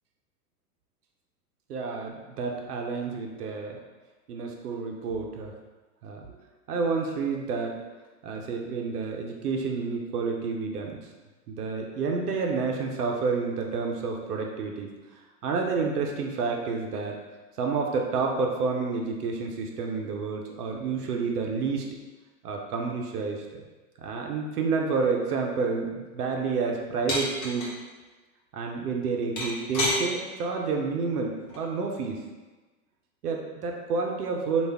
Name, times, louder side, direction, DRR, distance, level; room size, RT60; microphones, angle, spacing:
voice 1, 1.7-3.8 4.3-5.5 6.0-6.3 6.7-7.8 8.2-10.9 11.5-14.9 15.4-17.2 17.6-21.9 22.4-23.6 24.0-27.7 28.5-32.2 33.2-34.7, right 4 dB, 85° right, 1 dB, 0.7 m, -29 dB
sound 1, 27.1-27.7 29.4-30.0 31.5-31.8, left 1 dB, 40° left, 1.1 m, -28 dB
3.3 x 2.4 x 3.5 m, 1.2 s
hypercardioid pair, 115°, 45 cm